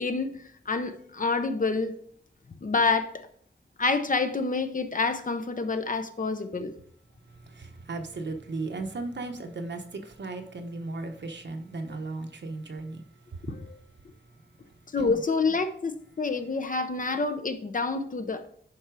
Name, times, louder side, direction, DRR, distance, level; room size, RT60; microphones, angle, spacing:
voice 1, 0.0-1.9 2.6-3.3 3.8-6.7 13.5-13.8 14.9-18.5, left 4 dB, 45° left, 0.8 m, -28 dB
voice 2, 7.2-15.2, right 3 dB, 70° right, 1.1 m, -37 dB
10.5 x 4.4 x 4.8 m
wide cardioid pair, 115°, 19 cm